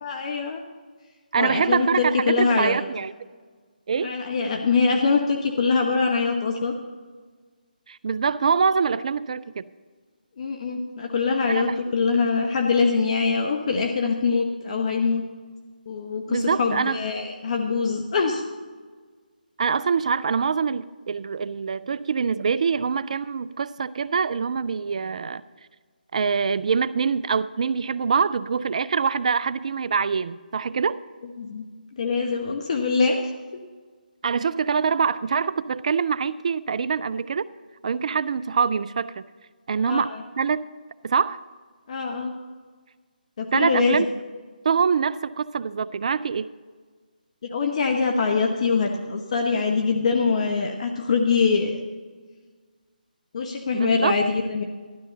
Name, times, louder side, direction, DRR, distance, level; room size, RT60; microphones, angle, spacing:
voice 1, 0.0-0.6 1.4-2.8 4.0-6.7 10.4-15.2 15.9-18.4 31.4-31.6 31.9-33.2 39.8-40.2 41.9-42.3 43.4-44.0 47.4-51.8 53.3-54.6, left 4 dB, 45° left, 3 dB, 1.0 m, -23 dB
voice 2, 1.3-3.1 3.9-4.1 7.9-9.6 11.5-11.7 16.3-17.0 19.6-25.4 26.1-31.0 34.2-37.5 37.8-39.2 39.7-40.6 41.0-41.4 43.5-44.1 44.6-46.5 53.7-54.2, right 6 dB, 50° right, 16 dB, 0.4 m, -24 dB
12.5 x 12.5 x 4.0 m, 1.5 s
figure-of-eight pair, 150°, 5 cm